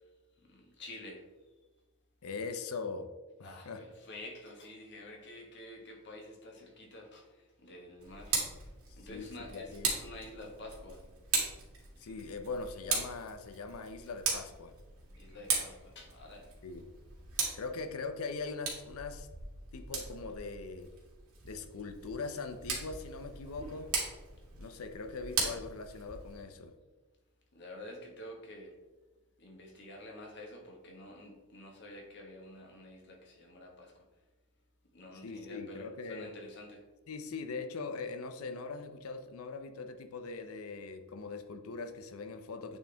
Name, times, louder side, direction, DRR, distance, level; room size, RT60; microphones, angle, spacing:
voice 1, 0.4-1.2 3.4-8.4 9.0-11.0 15.2-16.5 17.8-18.0 27.5-28.7 29.4-33.9 34.9-36.8, left 1 dB, 50° left, 1 dB, 1.4 m, -49 dB
voice 2, 2.2-3.1 3.4-3.8 9.0-10.0 12.0-14.7 16.6-16.9 17.5-19.3 19.7-20.9 21.4-24.0 24.6-26.7 35.2-36.3 37.1-42.8, left 4 dB, 70° left, 8 dB, 0.6 m, -41 dB
Tick, 8.0-26.4, right 4 dB, 75° right, 2.0 m, -39 dB
8.5 x 4.3 x 3.4 m, 1.2 s
head